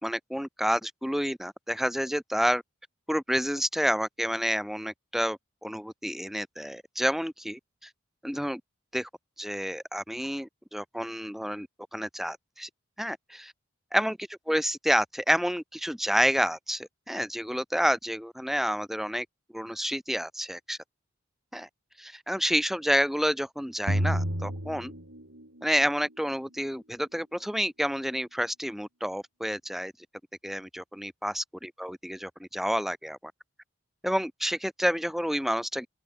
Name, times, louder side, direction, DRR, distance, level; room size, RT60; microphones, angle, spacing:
voice 1, 0.0-2.6 3.1-7.9 8.2-8.6 8.9-9.1 9.4-11.7 11.9-12.7 13.0-13.5 13.9-14.2 14.5-19.3 19.5-20.8 21.5-21.7 22.0-24.9 25.6-29.9 30.4-33.3 34.0-35.9, equal, ahead, 5.4 m, -29 dB
sound 1, 23.9-25.7, equal, 80° right, 7.5 m, -29 dB
open air
head